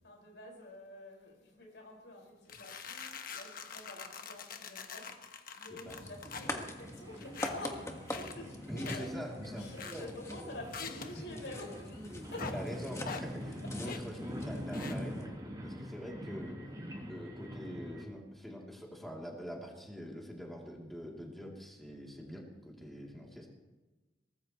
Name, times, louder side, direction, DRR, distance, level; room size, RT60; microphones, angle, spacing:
voice 1, 0.0-9.1 9.6-12.6, left 1 dB, 80° left, 0 dB, 5.4 m, -48 dB
sound 1, 2.5-6.5 7.2-7.8 8.1-8.4 8.8-9.1 9.8-10.2 10.7-11.2 12.4-12.6 13.0-13.3 13.9-14.1 14.7-14.9, left 6 dB, 55° left, 1.3 m, -44 dB
sound 2, 5.9-15.3, left 1 dB, 15° left, 1.6 m, -45 dB
sound 3, 6.4-18.0, equal, 25° right, 3.5 m, -44 dB
voice 2, 8.7-10.1 12.5-15.4 15.6-16.6 17.1-23.5, equal, ahead, -3 dB, 3.0 m, -44 dB
23.0 x 19.0 x 3.1 m, 1.1 s
head